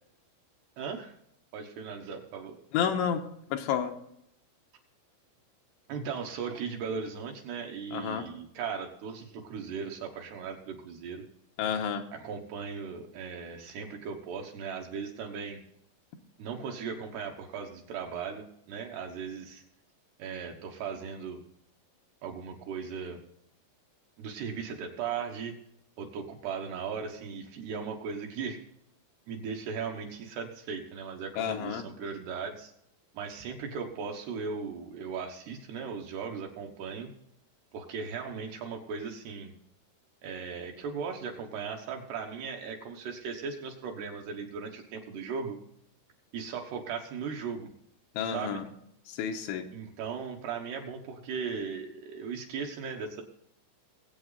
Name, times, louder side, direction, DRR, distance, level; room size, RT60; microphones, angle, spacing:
voice 1, 0.8-1.1 1.5-2.6 5.9-11.2 12.1-15.6 16.4-19.6 20.2-21.4 22.2-23.2 24.2-25.6 26.0-28.6 29.3-32.7 33.1-37.1 37.7-39.5 40.2-45.6 46.3-47.7 48.3-48.6 49.7-53.2, right 6 dB, 70° right, 2 dB, 2.9 m, -37 dB
voice 2, 2.7-3.2 3.5-3.9 7.9-8.3 11.6-12.0 31.4-31.8 48.2-48.6 49.1-49.7, left 8 dB, 80° left, 5 dB, 3.2 m, -30 dB
20.5 x 8.4 x 4.0 m, 0.74 s
omnidirectional pair, 5.6 m